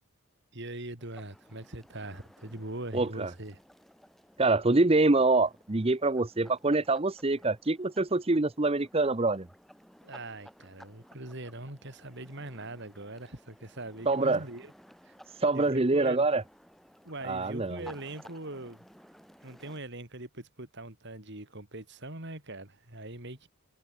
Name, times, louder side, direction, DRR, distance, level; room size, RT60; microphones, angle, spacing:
voice 1, 0.5-3.6 10.0-14.7 15.0-15.2 15.5-16.3 17.0-18.8 19.4-23.5, right 2 dB, 55° right, 3.8 m, -41 dB
sound 1, 1.0-19.8, equal, ahead, 6.3 m, -56 dB
voice 2, 2.9-3.3 4.4-9.5 14.1-14.4 15.3-16.4 17.2-17.8, right 2 dB, 25° right, 0.8 m, -25 dB
head